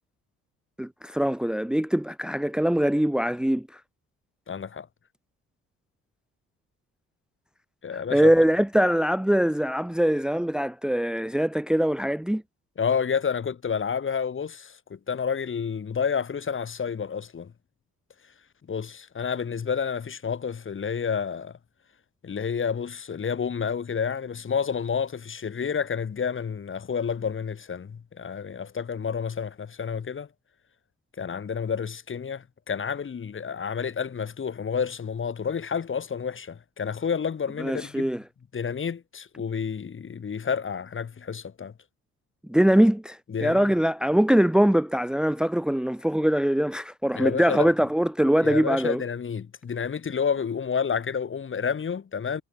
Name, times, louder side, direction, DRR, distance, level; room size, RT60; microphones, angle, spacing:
voice 1, 0.8-3.8 7.9-12.4 37.6-38.2 42.5-49.0, equal, 5° right, 1.1 m, -22 dB
voice 2, 4.5-4.9 7.8-8.3 12.8-17.5 18.7-21.5 22.2-30.3 31.2-38.1 38.5-41.7 43.3-43.7 47.2-47.7 48.4-52.4, left 6 dB, 40° left, 3.2 m, -30 dB
cardioid pair, 90°, 30 cm